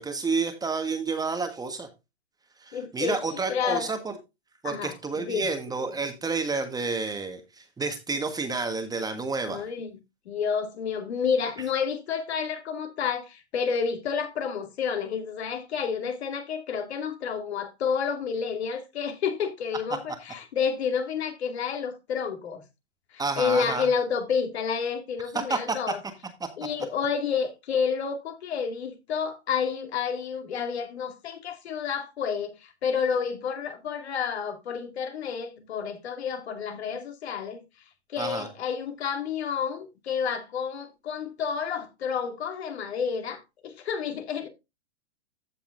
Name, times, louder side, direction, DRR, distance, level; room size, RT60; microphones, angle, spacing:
voice 1, 0.0-1.9 2.6-4.1 4.6-9.7 23.2-23.9 25.3-25.8 38.2-38.5, right 4 dB, 10° right, 1.4 m, -30 dB
voice 2, 2.7-3.9 4.6-5.5 9.4-9.9 10.3-22.6 23.1-26.0 26.6-37.6 38.1-44.5, left 6 dB, 70° left, 2.4 m, -30 dB
15.0 x 5.8 x 2.6 m
hypercardioid pair, 115°, 34 cm